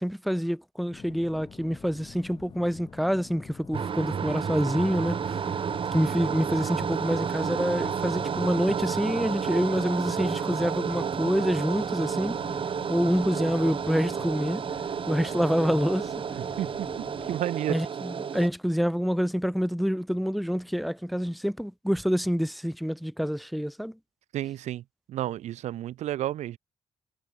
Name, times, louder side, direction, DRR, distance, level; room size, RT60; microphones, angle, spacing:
voice 1, 0.0-5.2 5.9-12.4 12.9-14.6 15.1-16.1 17.7-24.0, equal, ahead, 0.6 m, -27 dB
sound 1, 0.9-17.4, left 6 dB, 45° left, 0.8 m, -47 dB
sound 2, 3.7-18.5, right 7 dB, 50° right, 1.0 m, -31 dB
voice 2, 16.3-16.9 17.3-17.8 24.3-24.8 25.1-26.6, right 13 dB, 80° right, 0.5 m, -31 dB
cardioid pair, 85°, 12 cm